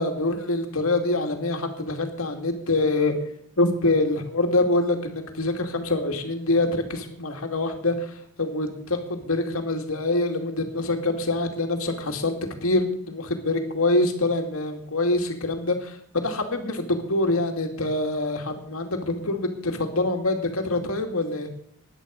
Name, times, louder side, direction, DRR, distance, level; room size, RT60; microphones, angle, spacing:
voice 1, 0.0-3.1 3.6-12.3 12.6-21.5, left 2 dB, 80° left, 4 dB, 2.5 m, -25 dB
17.5 x 11.0 x 5.3 m, 0.68 s
head